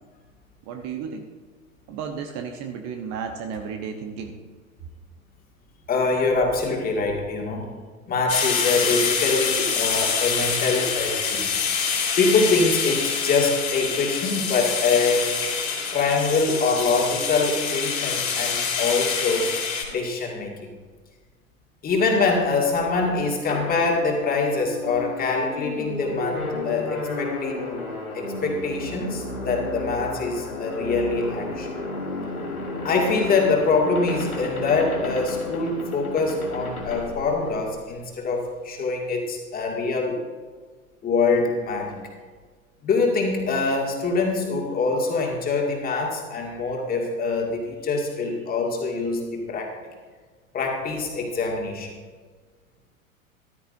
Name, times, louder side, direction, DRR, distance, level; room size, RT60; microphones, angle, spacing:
voice 1, 0.7-1.3 1.9-4.4, right 6 dB, 35° right, 5 dB, 1.0 m, -33 dB
voice 2, 5.9-7.7 8.1-11.6 12.2-15.3 15.9-19.5 19.9-20.7 21.8-27.6 28.1-31.7 32.8-40.2 41.0-42.0 42.8-49.7 50.5-51.9, left 3 dB, 20° left, 0 dB, 2.2 m, -24 dB
sound 1, 8.3-19.8, left 6 dB, 60° left, 3.6 m, -26 dB
sound 2, 23.5-38.0, left 2 dB, 85° left, 1.9 m, -33 dB
14.0 x 12.5 x 2.7 m, 1.5 s
figure-of-eight pair, 95°, 42 cm